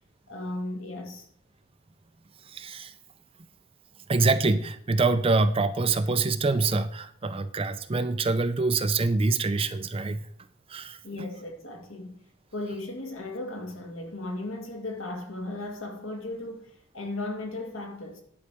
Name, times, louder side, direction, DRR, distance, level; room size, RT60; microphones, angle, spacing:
voice 1, 0.3-1.3 11.0-12.1 12.5-18.2, left 2 dB, 70° left, 2.1 m, -36 dB
voice 2, 2.5-2.9 4.1-10.3 10.7-11.0, right 3 dB, 25° right, 0.5 m, -25 dB
11.0 x 4.8 x 7.0 m
head